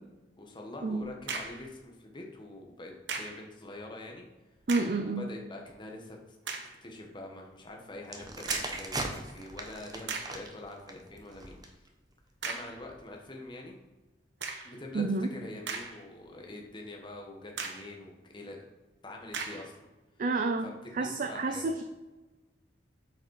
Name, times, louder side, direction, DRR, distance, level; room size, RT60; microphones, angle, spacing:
voice 1, 0.4-4.2 5.0-6.4 6.8-11.9 12.4-13.8 14.6-18.6 19.0-19.9 20.6-21.8, left 2 dB, 25° left, 1 dB, 1.2 m, -45 dB
sound 1, 1.0-1.7 3.1-3.5 4.6-5.1 5.7-5.8 6.4-6.8 8.5-8.9 9.5-9.6 10.1-10.5 12.4-12.8 14.4-14.8 15.4-16.2 16.6-16.7 17.6-17.9 19.3-19.7, right 4 dB, 70° right, 1.0 m, -38 dB
voice 2, 4.7-5.2 14.9-15.3 20.2-20.7 20.9-21.8, right 3 dB, 45° right, 7 dB, 0.5 m, -29 dB
sound 2, 8.0-11.9 12.7-12.9, right 2 dB, 20° right, 0.9 m, -38 dB
8.4 x 5.1 x 4.7 m, 1.2 s
head